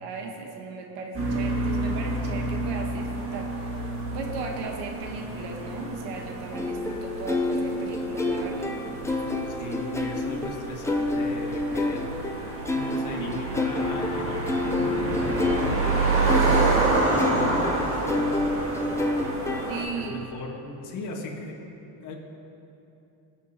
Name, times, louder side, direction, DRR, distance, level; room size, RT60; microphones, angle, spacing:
voice 1, 0.0-9.8 19.7-20.2, right 4 dB, 70° right, 2 dB, 1.3 m, -37 dB
sound 1, 1.1-19.8, right 2 dB, 30° right, 1.8 m, -29 dB
sound 2, 6.5-20.1, left 2 dB, 5° left, 0.6 m, -29 dB
voice 2, 9.4-12.2 12.7-19.1 19.9-21.6 22.0-22.1, left 2 dB, 45° left, -1 dB, 1.8 m, -38 dB
19.5 x 7.3 x 2.9 m, 2.8 s
supercardioid pair, 110°, 44 cm